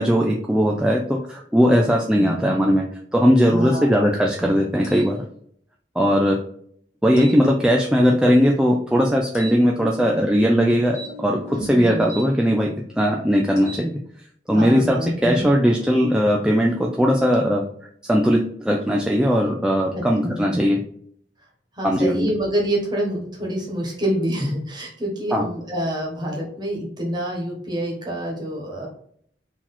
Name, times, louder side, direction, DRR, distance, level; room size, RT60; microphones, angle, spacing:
voice 1, 0.0-2.8 3.1-5.2 6.0-6.4 7.0-14.0 14.5-17.7 18.1-20.8 21.8-22.3 25.3-25.4, equal, 5° right, -1 dB, 0.4 m, -19 dB
voice 2, 2.1-2.5 3.4-3.9 11.5-12.1 14.5-15.5 19.9-20.6 21.8-28.9, equal, 25° right, -1 dB, 1.3 m, -27 dB
sound 1, 4.8-5.1 7.2-7.4 9.3-9.6 10.9-12.3 13.5-13.9, right 1 dB, 40° left, 1.5 m, -38 dB
4.0 x 2.9 x 4.2 m, 0.64 s
head